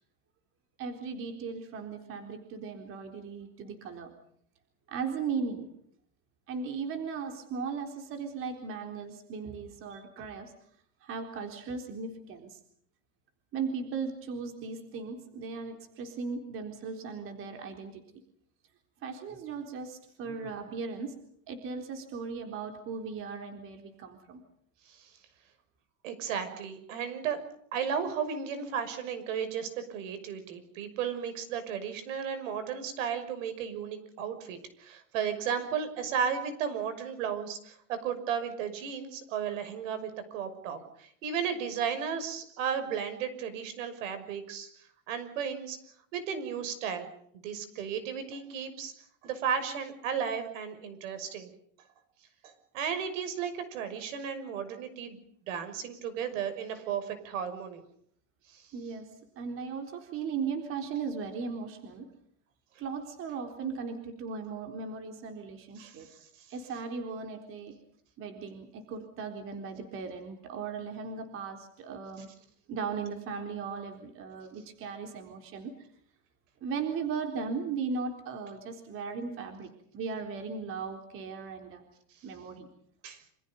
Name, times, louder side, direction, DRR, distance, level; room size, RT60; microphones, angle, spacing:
voice 1, 0.8-4.1 4.9-5.7 6.5-10.5 11.0-12.6 13.5-18.0 19.0-21.1 21.5-24.4 58.7-59.1 59.4-62.1 62.8-66.1 66.5-67.7 68.2-72.3 72.7-75.7 76.6-81.8 82.2-82.7, right 5 dB, 30° right, 5 dB, 3.9 m, -37 dB
voice 2, 26.0-27.4 27.7-44.7 45.1-45.8 46.1-47.1 47.3-48.9 49.2-51.5 52.4-55.2 55.5-57.8 58.5-58.6 65.8-66.2 83.0-83.2, right 7 dB, 70° right, 10 dB, 6.2 m, -34 dB
28.0 x 27.0 x 5.4 m, 0.65 s
supercardioid pair, 165°, 39 cm